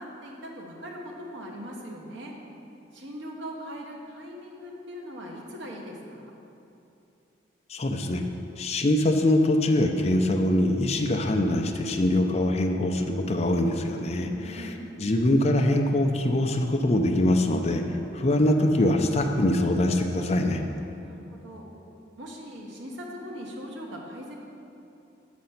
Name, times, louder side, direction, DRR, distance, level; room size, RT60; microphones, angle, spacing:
voice 1, 0.0-2.3 2.9-6.3 14.2-15.0 21.0-21.7 22.2-24.3, equal, 70° right, -1 dB, 1.1 m, -40 dB
voice 2, 7.7-8.2 8.6-20.6, left 1 dB, 35° left, 4 dB, 0.5 m, -23 dB
6.6 x 5.2 x 5.8 m, 2.8 s
head